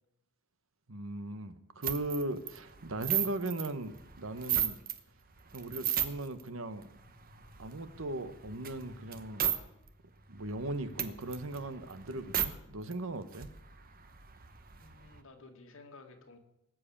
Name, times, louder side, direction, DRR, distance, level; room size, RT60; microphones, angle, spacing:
voice 1, 0.9-4.8 5.5-6.9 7.6-9.5 10.3-13.5, right 2 dB, 65° right, 12 dB, 1.1 m, -38 dB
sound 1, 1.8-5.0 5.4-6.4 6.8-9.6 9.9-10.0 10.3-12.5 12.9-13.0 13.2-15.2, right 10 dB, 45° right, 1.1 m, -36 dB
voice 2, 14.8-16.4, left 3 dB, 65° left, 4 dB, 2.1 m, -54 dB
19.0 x 7.6 x 8.7 m, 0.85 s
head